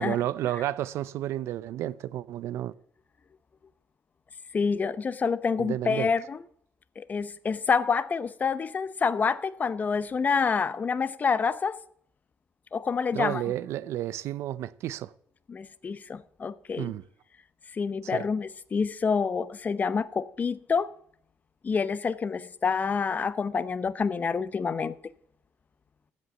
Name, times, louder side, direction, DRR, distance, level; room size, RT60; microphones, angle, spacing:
voice 1, 0.0-2.7 5.6-6.1 13.1-15.1 16.8-17.0 18.0-18.2, right 13 dB, 75° right, 0.4 m, -31 dB
voice 2, 4.5-6.5 7.0-11.8 12.7-13.5 15.5-16.9 17.7-20.9 21.6-24.9, left 5 dB, 35° left, 0.7 m, -27 dB
15.0 x 5.3 x 6.9 m
cardioid pair, 85°, 5 cm